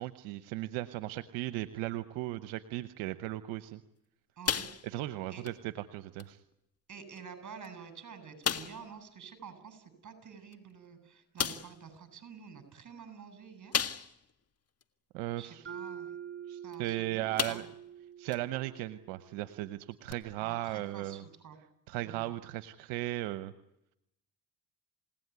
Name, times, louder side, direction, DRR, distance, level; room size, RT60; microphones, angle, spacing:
voice 1, 0.0-3.8 4.8-5.5 5.9-6.4 15.1-15.6 16.5-17.7 18.2-21.2 21.9-23.5, right 16 dB, 90° right, 12 dB, 1.0 m, -36 dB
sound 1, 4.4-5.1 5.4-5.6 6.2-6.3 7.1-7.2 7.6-7.7 8.4-8.9 10.5-10.6 11.4-11.8 13.7-14.3 14.8-14.9 16.7-16.9 17.4-17.9 18.3-18.4 20.1-20.2, left 7 dB, 35° left, 1.8 m, -33 dB
voice 2, 4.4-4.7 5.3-5.4 6.9-13.8 15.4-16.2 16.6-17.6 20.4-21.6 22.0-22.3, right 6 dB, 50° right, 10 dB, 7.6 m, -49 dB
Mallet percussion, 15.7-19.7, right 9 dB, 30° right, 6.0 m, -46 dB
29.0 x 17.5 x 9.5 m, 0.84 s
supercardioid pair, 70°, 40 cm